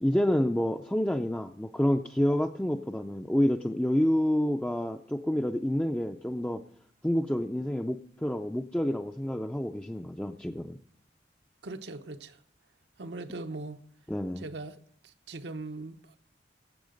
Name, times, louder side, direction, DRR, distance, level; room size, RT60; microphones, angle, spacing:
voice 1, 0.0-6.6 7.0-10.8 14.1-14.4, equal, 5° left, 0.4 m, -28 dB
voice 2, 11.6-12.4 13.0-13.8 14.4-16.2, right 2 dB, 75° right, 0.8 m, -40 dB
17.0 x 7.8 x 5.1 m
head